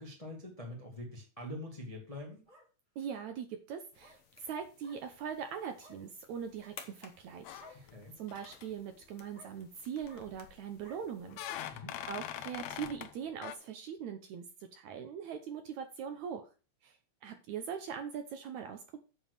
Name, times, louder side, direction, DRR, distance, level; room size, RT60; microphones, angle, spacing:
voice 1, 0.0-2.4 7.8-8.2 11.7-12.0, left 1 dB, 15° left, 0 dB, 1.4 m, -44 dB
sound 1, 2.1-2.7 3.1-3.3 4.0-4.2 4.8-5.0 5.8-6.0 6.5-6.8 7.5-7.8 8.3-8.6 9.3-9.5 10.0-10.2 10.8-11.0, right 1 dB, 15° right, 2.3 m, -57 dB
voice 2, 3.0-7.9 8.2-14.4 14.7-16.4 16.8-17.0 17.2-19.0, right 7 dB, 70° right, 7 dB, 1.9 m, -41 dB
sound 2, 3.9-11.6, left 7 dB, 60° left, 1.4 m, -58 dB
sound 3, 7.4-8.0 8.3-8.7 10.0-10.6 11.3-13.1 13.4-13.6, left 11 dB, 85° left, 1.5 m, -43 dB
8.9 x 4.6 x 6.4 m, 0.33 s
omnidirectional pair, 3.9 m